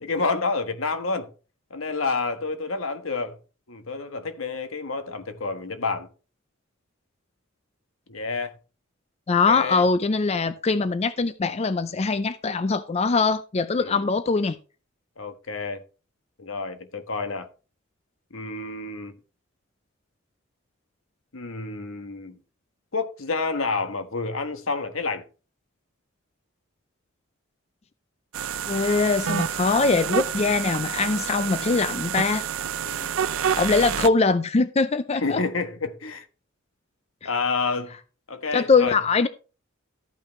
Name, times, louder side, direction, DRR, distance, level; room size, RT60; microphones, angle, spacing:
voice 1, 0.0-1.3 1.7-3.4 3.7-6.1 8.1-8.5 9.5-9.8 13.8-14.1 15.2-15.8 16.4-17.5 18.3-19.1 21.3-22.4 22.9-25.2 32.8-33.2 35.2-36.2 37.2-38.0 38.3-39.0, left 4 dB, 75° left, 1.3 m, -29 dB
voice 2, 9.3-14.6 28.7-32.4 33.5-35.4 38.5-39.3, left 4 dB, 30° left, 0.4 m, -22 dB
sound 1, 28.3-34.1, right 8 dB, 75° right, 0.5 m, -28 dB
13.0 x 8.9 x 3.1 m
head